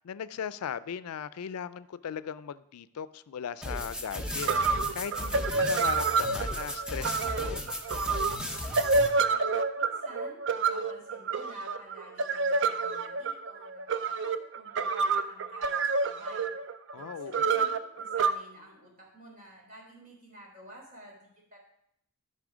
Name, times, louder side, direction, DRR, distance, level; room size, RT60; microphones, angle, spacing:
voice 1, 0.0-7.6 16.9-17.4, left 7 dB, 85° left, 16 dB, 0.4 m, -38 dB
sound 1, 3.6-9.1, left 1 dB, 5° right, 0.9 m, -35 dB
sound 2, 4.1-4.2 4.4-18.3, right 4 dB, 55° right, 0.5 m, -28 dB
voice 2, 9.2-9.5 9.8-16.5 16.9-21.6, equal, 35° right, -2 dB, 3.6 m, -51 dB
13.0 x 5.5 x 5.0 m, 0.76 s
head